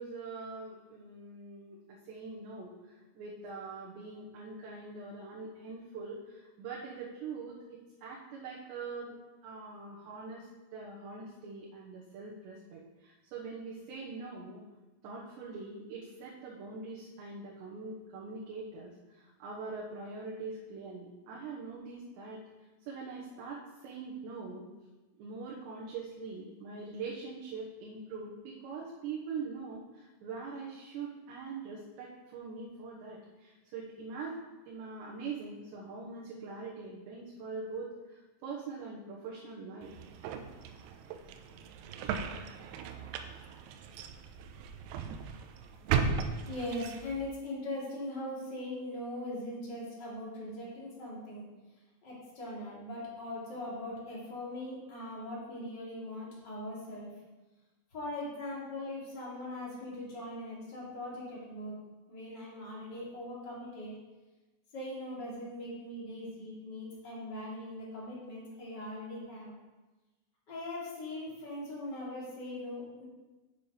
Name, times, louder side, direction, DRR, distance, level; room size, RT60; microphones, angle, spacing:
voice 1, 0.0-2.7 3.1-14.6 15.0-22.4 22.9-24.7 25.2-34.4 34.7-39.9, right 4 dB, 70° right, -4 dB, 3.0 m, -43 dB
sound 1, 39.8-47.3, right 6 dB, 90° right, 3.4 m, -37 dB
voice 2, 45.8-46.1 46.4-51.5 52.0-57.1 57.9-61.8 62.1-63.9 64.7-69.5 70.5-73.0, left 1 dB, 25° left, -6 dB, 2.7 m, -40 dB
9.5 x 6.8 x 5.0 m, 1.2 s
omnidirectional pair, 5.9 m